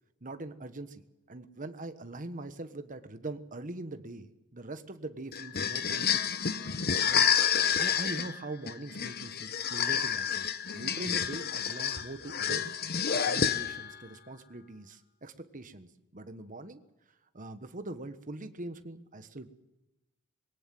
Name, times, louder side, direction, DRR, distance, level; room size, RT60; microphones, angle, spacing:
voice 1, 0.2-1.0 1.3-6.3 7.0-7.3 7.6-10.5 10.7-12.7 13.1-16.8 17.3-19.5, right 2 dB, 40° right, 9 dB, 1.3 m, -42 dB
sound 1, 5.3-14.0, left 8 dB, 45° left, 1.0 m, -29 dB
22.0 x 18.0 x 7.8 m, 0.95 s
head